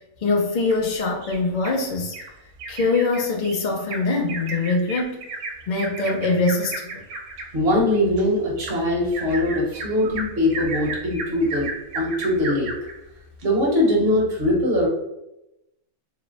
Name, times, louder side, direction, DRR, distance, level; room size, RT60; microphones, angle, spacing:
voice 1, 0.2-2.2 2.7-5.3 5.7-7.0, left 3 dB, 70° left, 1 dB, 0.4 m, -23 dB
Bird vocalization bird call bird song, 0.7-1.8 2.1-2.3 2.6-12.9 13.4-13.5 13.9-14.0, right 3 dB, 65° right, 0.8 m, -34 dB
voice 2, 7.5-11.7 11.9-12.7 13.4-14.9, left 1 dB, 45° right, -3 dB, 1.1 m, -21 dB
3.0 x 2.0 x 3.9 m, 0.89 s
omnidirectional pair, 1.5 m